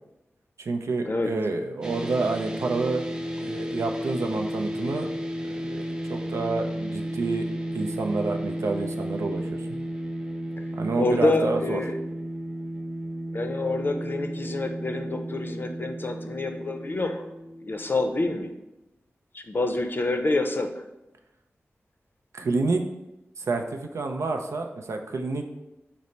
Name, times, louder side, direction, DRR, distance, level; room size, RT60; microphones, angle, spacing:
voice 1, 0.6-3.0 3.4-5.1 5.4-7.5 7.7-9.7 10.7-11.8 22.3-22.8 23.4-25.4, right 3 dB, 85° right, 5 dB, 0.4 m, -28 dB
sound 1, 1.8-18.2, right 1 dB, 15° right, 0.4 m, -33 dB
voice 2, 11.0-12.0 13.3-17.3 17.6-18.5 19.3-20.7, left 2 dB, 45° left, 5 dB, 0.5 m, -27 dB
5.1 x 2.0 x 4.2 m, 0.95 s
wide cardioid pair, 65°, 5 cm